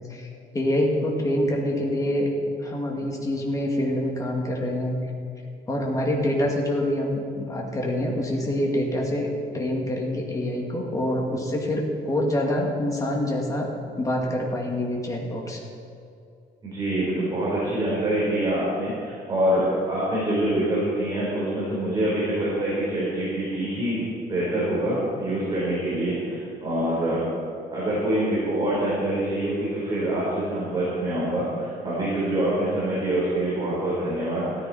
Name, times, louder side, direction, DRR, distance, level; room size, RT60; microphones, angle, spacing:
voice 1, 0.5-2.3 2.6-4.9 5.7-9.3 9.5-13.7 14.0-15.6, left 1 dB, 20° left, -1 dB, 2.3 m, -26 dB
voice 2, 16.6-27.2 27.7-34.7, right 1 dB, 25° right, -8 dB, 4.2 m, -25 dB
16.0 x 14.0 x 4.3 m, 2.5 s
cardioid pair, 155°, 17 cm